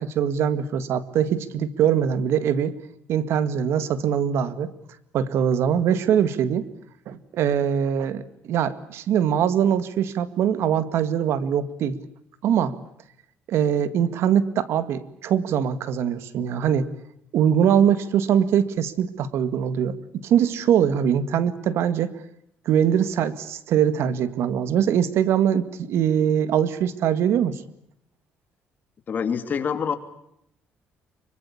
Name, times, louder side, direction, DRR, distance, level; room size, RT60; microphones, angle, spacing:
voice 1, 0.0-2.8 3.1-4.7 5.1-6.7 7.1-12.0 12.4-12.7 13.5-16.9 17.3-22.2 22.7-27.6, right 8 dB, 70° right, 14 dB, 2.0 m, -22 dB
voice 2, 29.1-30.0, left 6 dB, 40° left, 9 dB, 2.8 m, -25 dB
25.0 x 23.5 x 8.6 m, 0.76 s
cardioid pair, 125°, 5 cm